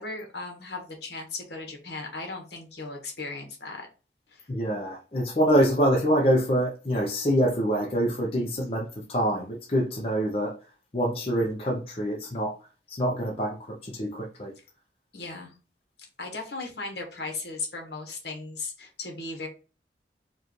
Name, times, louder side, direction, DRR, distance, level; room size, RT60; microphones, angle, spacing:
voice 1, 0.0-3.9 4.3-4.5 15.1-15.5 16.2-19.5, left 3 dB, 65° left, 1.3 m, -37 dB
voice 2, 4.5-10.6 10.9-12.6 12.9-14.5, equal, 35° left, 0.6 m, -25 dB
4.7 x 2.4 x 3.0 m
head